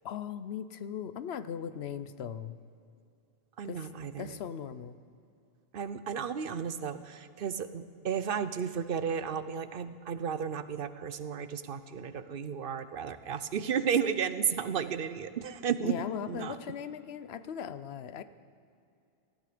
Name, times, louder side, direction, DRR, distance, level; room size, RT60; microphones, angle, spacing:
voice 1, 0.0-2.6 3.6-3.9 4.2-5.0 15.8-18.2, left 8 dB, 85° left, 13 dB, 0.9 m, -38 dB
voice 2, 3.6-4.4 5.7-16.6, right 7 dB, 65° right, 13 dB, 0.9 m, -33 dB
18.0 x 14.5 x 5.0 m, 2.6 s
omnidirectional pair, 1.0 m